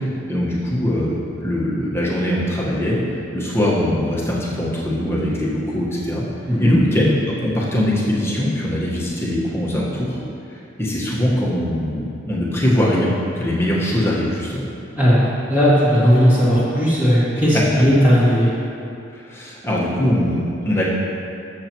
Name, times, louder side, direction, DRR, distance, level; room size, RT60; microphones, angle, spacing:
voice 1, 0.3-3.0 3.3-6.2 6.6-10.2 10.8-14.6 19.3-20.9, left 1 dB, 15° left, -6 dB, 1.4 m, -21 dB
voice 2, 15.0-18.5, equal, 10° right, -11 dB, 2.2 m, -16 dB
12.5 x 7.2 x 3.1 m, 2.6 s
head